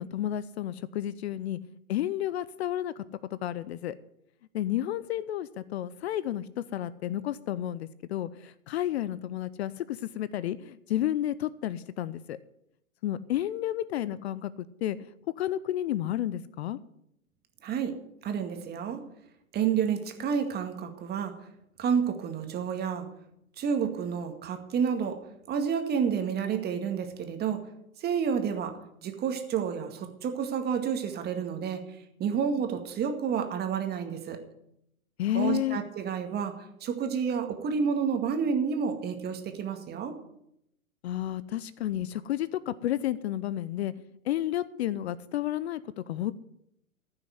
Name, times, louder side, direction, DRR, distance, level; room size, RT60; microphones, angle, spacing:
voice 1, 0.0-1.6 1.9-3.0 3.3-4.0 4.5-12.4 13.0-15.1 15.4-16.8 35.2-35.8 41.0-43.9 44.2-46.3, left 12 dB, 50° left, 17 dB, 0.7 m, -31 dB
voice 2, 17.6-17.9 18.2-19.0 19.5-21.3 21.8-23.1 23.6-25.2 25.5-27.6 28.0-28.7 29.0-31.8 32.2-34.4 35.3-36.5 36.8-40.1, right 7 dB, 25° right, 6 dB, 2.0 m, -29 dB
15.0 x 6.3 x 9.4 m, 0.78 s
hypercardioid pair, 120°, 41 cm